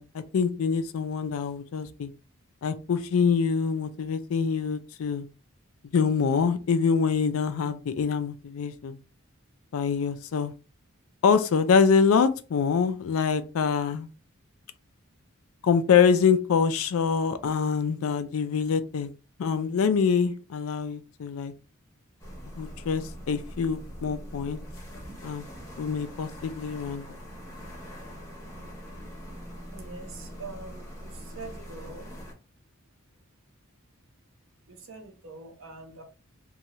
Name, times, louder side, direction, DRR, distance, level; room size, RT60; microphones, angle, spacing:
voice 1, 0.0-2.1 2.6-5.3 5.9-9.0 9.7-10.5 11.2-14.1 15.6-19.1 19.4-21.5 22.6-24.6 25.2-25.4 25.8-27.0, left 6 dB, 75° left, 0.4 m, -25 dB
sound 1, 22.2-32.3, equal, 15° left, 0.8 m, -42 dB
voice 2, 29.7-32.2 34.7-36.0, right 3 dB, 65° right, 0.7 m, -44 dB
2.7 x 2.3 x 3.0 m
head